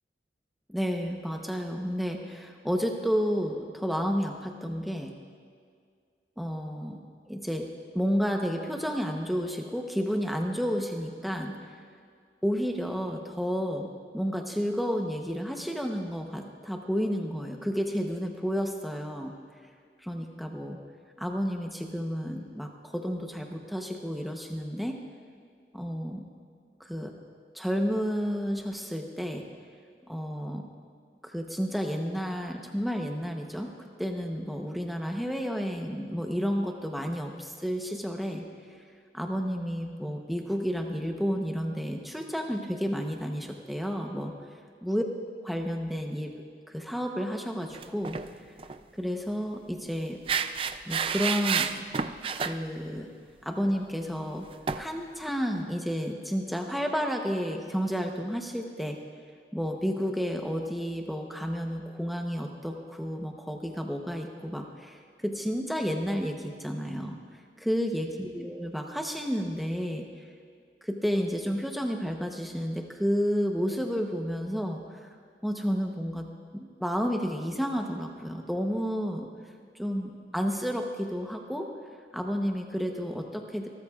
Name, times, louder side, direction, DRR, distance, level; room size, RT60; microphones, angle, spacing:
voice 1, 0.7-5.1 6.4-11.7 12.4-19.3 20.0-20.8 21.2-25.0 25.7-26.3 26.8-27.2 27.5-29.5 30.1-30.7 31.2-38.5 39.1-44.3 44.8-45.0 45.4-46.3 46.7-48.2 48.9-50.2 50.9-51.7 52.3-53.1 53.4-54.5 54.8-59.0 59.5-67.2 67.6-70.2 70.8-74.8 75.4-76.3 76.5-79.3 79.7-81.7 82.1-83.7, equal, ahead, 2 dB, 0.8 m, -31 dB
sound 1, 47.7-48.3 48.6-48.8 50.3-52.6 54.7-54.8, right 6 dB, 30° right, 0.3 m, -29 dB
27.5 x 13.5 x 2.4 m, 2.1 s
head